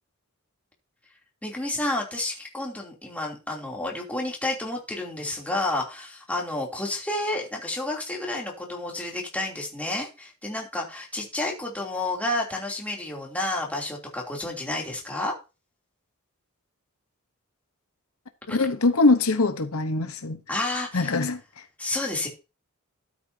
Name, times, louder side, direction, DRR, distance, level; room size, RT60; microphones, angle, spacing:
voice 1, 1.4-15.3 18.5-18.6 20.5-21.1 21.8-22.3, left 2 dB, 5° left, 3.0 m, -30 dB
voice 2, 18.5-20.4 20.9-21.4, left 3 dB, 80° left, 1.1 m, -22 dB
12.5 x 8.9 x 2.8 m
head